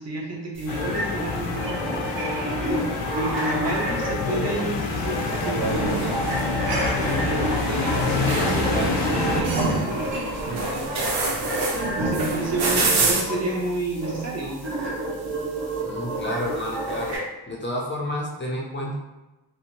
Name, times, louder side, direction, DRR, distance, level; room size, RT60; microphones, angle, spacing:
voice 1, 0.0-2.4 2.6-6.0 7.0-11.3 11.9-14.6, right 2 dB, 35° right, -2 dB, 0.7 m, -30 dB
sound 1, 0.5-17.2, right 1 dB, 70° right, 1.0 m, -31 dB
sound 2, 0.7-9.4, left 4 dB, 85° left, 0.6 m, -27 dB
sound 3, 5.6-13.2, right 3 dB, 85° right, 0.7 m, -26 dB
voice 2, 15.8-17.2 17.5-18.9, left 1 dB, 25° left, -3 dB, 0.4 m, -30 dB
2.6 x 2.1 x 2.8 m, 1.0 s
wide cardioid pair, 110°, 47 cm